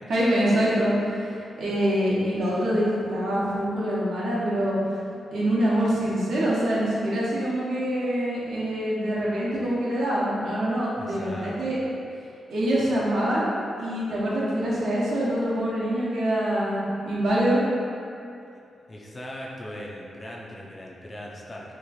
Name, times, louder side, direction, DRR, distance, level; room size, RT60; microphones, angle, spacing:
voice 1, 0.1-4.8 5.3-11.8 12.5-17.6, equal, 70° right, -8 dB, 1.0 m, -25 dB
voice 2, 11.0-11.5 18.9-21.8, left 1 dB, 25° left, -3 dB, 0.4 m, -39 dB
3.1 x 2.5 x 4.0 m, 2.5 s
wide cardioid pair, 135°, 0 cm